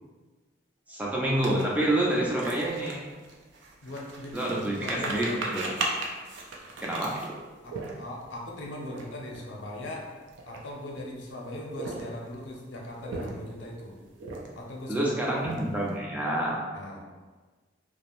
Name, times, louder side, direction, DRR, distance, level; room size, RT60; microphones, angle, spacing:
voice 1, 0.9-3.0 4.3-5.6 6.8-7.4 14.9-16.6, right 1 dB, 10° right, -4 dB, 0.3 m, -28 dB
sound 1, 1.4-8.3 8.8-9.0 9.3-9.5 10.2-11.0 11.6-12.4 12.9-13.6 14.2-14.7 15.1-15.9, right 2 dB, 75° right, 0.4 m, -36 dB
voice 2, 3.8-5.5 7.6-10.1 10.5-14.0 14.5-15.1 16.7-17.0, left 1 dB, 80° left, -1 dB, 0.5 m, -39 dB
2.5 x 2.0 x 2.9 m, 1.4 s
head